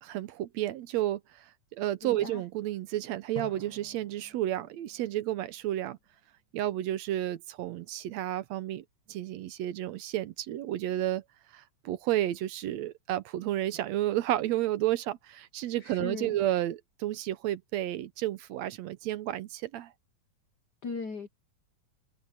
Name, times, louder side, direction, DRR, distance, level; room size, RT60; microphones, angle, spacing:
voice 1, 0.0-6.0 6.5-11.2 11.5-19.9, right 13 dB, 75° right, 1.9 m, -31 dB
voice 2, 2.0-2.4 15.8-16.4 20.8-21.3, left 4 dB, 85° left, 0.9 m, -38 dB
Drum, 3.4-6.3, left 1 dB, 35° left, 8.5 m, -49 dB
omnidirectional pair, 3.4 m